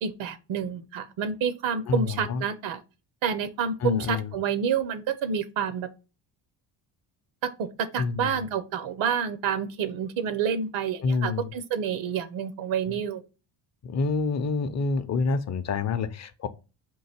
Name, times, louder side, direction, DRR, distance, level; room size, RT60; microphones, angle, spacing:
voice 1, 0.0-2.8 3.2-5.9 7.4-13.2, right 7 dB, 75° right, 0.7 m, -28 dB
voice 2, 1.9-2.4 3.8-4.3 8.0-8.4 11.0-11.5 13.8-16.5, left 4 dB, 35° left, 0.5 m, -27 dB
3.9 x 2.5 x 4.2 m
cardioid pair, 95°, 47 cm